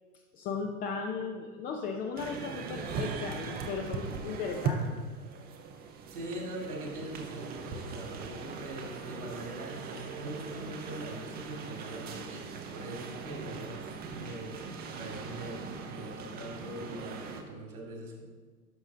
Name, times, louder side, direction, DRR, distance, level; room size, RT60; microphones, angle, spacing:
voice 1, 0.3-4.9, left 5 dB, 20° left, 2 dB, 0.5 m, -36 dB
sound 1, 2.2-17.4, right 5 dB, 20° right, 0.7 m, -39 dB
voice 2, 6.1-14.6 14.9-18.2, right 1 dB, 70° right, 0 dB, 2.8 m, -42 dB
11.0 x 6.2 x 3.7 m, 1.4 s
figure-of-eight pair, 105°, 46 cm